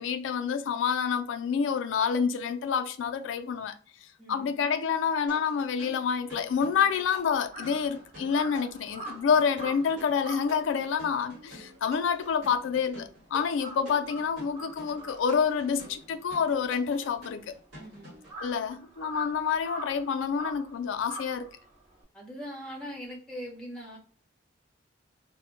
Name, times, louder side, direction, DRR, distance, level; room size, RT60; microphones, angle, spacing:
voice 1, 0.0-3.8 4.3-17.5 18.4-21.5, left 6 dB, 80° left, 0.3 m, -28 dB
voice 2, 4.2-4.6 13.8-13.9 17.7-18.2 22.1-24.0, equal, 5° left, 0.8 m, -41 dB
sound 1, 5.3-18.3, equal, 65° right, 1.2 m, -48 dB
Crow, 6.6-13.1 13.4-22.0, right 1 dB, 35° right, 0.9 m, -45 dB
2.1 x 2.1 x 3.8 m
head